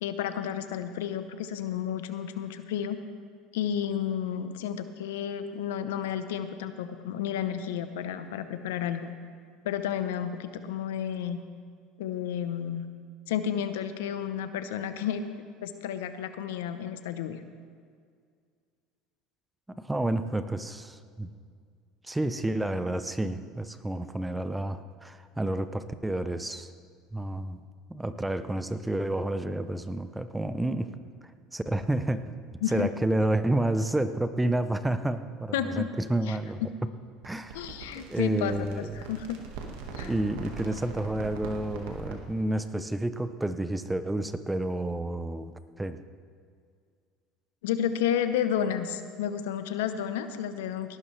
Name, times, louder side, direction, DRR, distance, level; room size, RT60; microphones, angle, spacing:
voice 1, 0.0-3.0 3.5-9.1 9.6-11.4 12.0-12.8 13.3-15.2 15.6-17.4 32.6-32.9 35.5-35.8 36.3-36.4 37.5-38.7 38.9-39.4 39.9-40.1 47.6-51.0, left 9 dB, 90° left, 10 dB, 0.8 m, -31 dB
voice 2, 19.7-21.3 22.0-26.7 27.1-27.6 27.9-30.9 31.5-32.3 32.7-36.6 37.2-37.6 38.0-39.1 40.0-46.0, right 1 dB, 10° right, 11 dB, 0.6 m, -30 dB
sound 1, 37.2-42.3, right 4 dB, 80° right, 1.6 m, -41 dB
18.0 x 12.0 x 3.3 m, 2.1 s
supercardioid pair, 105°, 0 cm